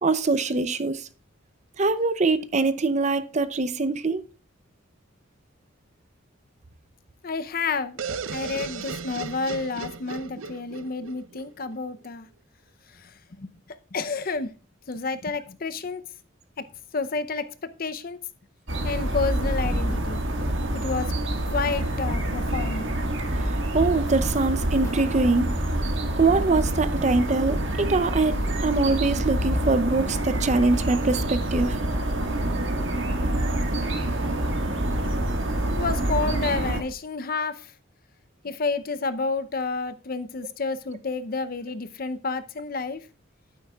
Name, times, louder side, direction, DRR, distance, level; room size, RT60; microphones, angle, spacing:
voice 1, 0.0-1.1 1.8-4.2 23.4-25.5 26.2-31.8, right 3 dB, 35° right, 0.6 m, -23 dB
voice 2, 7.2-8.0 8.3-12.3 12.9-14.5 14.9-16.0 16.6-16.7 16.9-18.2 18.8-20.2 20.7-21.1 21.5-22.9 35.7-37.7 38.4-43.1, left 4 dB, 45° left, 0.6 m, -30 dB
sound 1, 8.0-11.8, right 5 dB, 80° right, 0.6 m, -35 dB
sound 2, 18.7-36.8, right 1 dB, 65° right, 1.6 m, -27 dB
sound 3, 19.1-20.9 21.3-23.0 23.3-25.4, equal, 15° left, 1.0 m, -36 dB
12.0 x 9.3 x 2.3 m
head